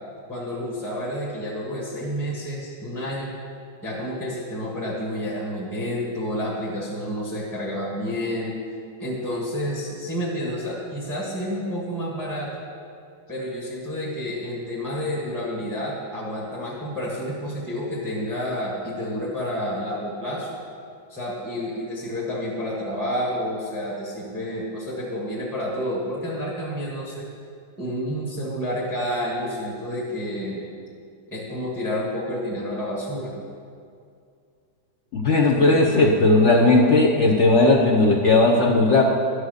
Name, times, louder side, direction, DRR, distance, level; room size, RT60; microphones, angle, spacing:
voice 1, 0.3-3.4 3.8-8.6 9.0-12.6 13.3-20.6 21.1-27.3 27.8-30.6 31.3-33.4, equal, ahead, -5 dB, 1.1 m, -29 dB
voice 2, 35.1-39.1, left 2 dB, 60° left, -2 dB, 0.7 m, -17 dB
11.5 x 4.9 x 6.4 m, 2.3 s
omnidirectional pair, 2.1 m